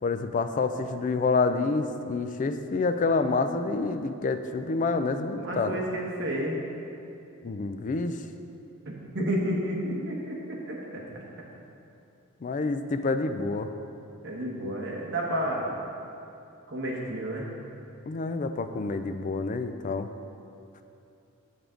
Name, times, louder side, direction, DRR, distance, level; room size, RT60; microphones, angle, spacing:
voice 1, 0.0-5.8 7.4-8.2 12.4-13.7 18.1-20.1, left 3 dB, 35° left, 8 dB, 0.3 m, -28 dB
voice 2, 5.4-6.6 8.8-11.0 14.2-15.8 16.7-17.5, equal, 55° right, -2 dB, 1.2 m, -31 dB
8.0 x 7.0 x 3.8 m, 2.7 s
head